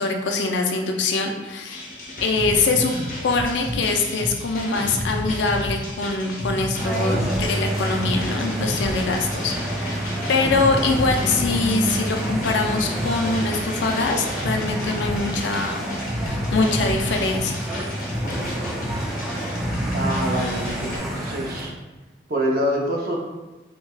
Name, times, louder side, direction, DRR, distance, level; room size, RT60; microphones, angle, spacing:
voice 1, 0.0-1.9 2.2-2.9 3.2-10.0 10.3-15.9 16.2-17.6, left 3 dB, 80° left, 4 dB, 0.4 m, -23 dB
sound 1, 1.7-21.0, left 1 dB, 45° left, 0.7 m, -31 dB
sound 2, 2.0-3.6 4.5-5.4 6.9-7.0 7.3-8.3 8.8-9.3, equal, 70° right, 1.2 m, -38 dB
sound 3, 6.8-21.7, right 1 dB, ahead, 0.4 m, -28 dB
voice 2, 19.9-21.7 22.3-23.2, equal, 55° right, -1 dB, 0.6 m, -26 dB
4.6 x 2.2 x 2.2 m, 1.1 s
head